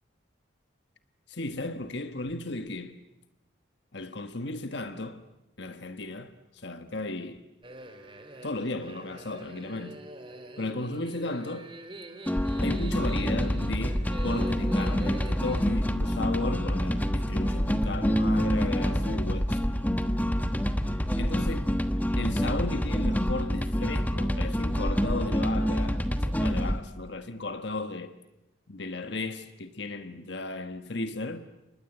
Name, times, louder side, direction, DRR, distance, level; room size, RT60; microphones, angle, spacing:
voice 1, 1.3-3.0 3.9-5.3 5.6-7.5 8.4-10.0 10.6-11.7 12.6-19.7 21.2-21.7 22.2-28.1 28.7-31.5, left 2 dB, 60° left, 1.4 m, -35 dB
sound 1, 7.6-15.7, right 2 dB, 25° right, 2.6 m, -44 dB
sound 2, 12.3-26.8, equal, 10° left, 1.2 m, -27 dB
29.5 x 25.0 x 8.1 m
head